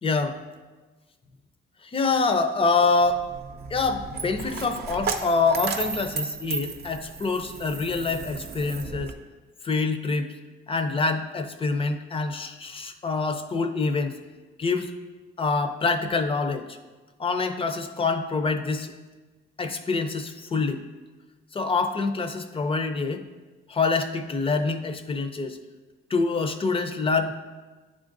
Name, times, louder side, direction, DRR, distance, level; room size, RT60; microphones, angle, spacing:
voice 1, 0.0-0.4 1.9-3.2 3.7-9.1 9.6-10.3 10.7-14.2 14.6-14.9 15.4-16.8 17.2-18.9 19.6-20.8 21.5-23.2 23.7-25.6 26.1-27.3, left 4 dB, 25° left, 7 dB, 0.5 m, -26 dB
Coin (dropping), 3.0-9.1, right 5 dB, 55° right, 0.6 m, -34 dB
9.8 x 3.7 x 2.6 m, 1.3 s
cardioid pair, 90°, 20 cm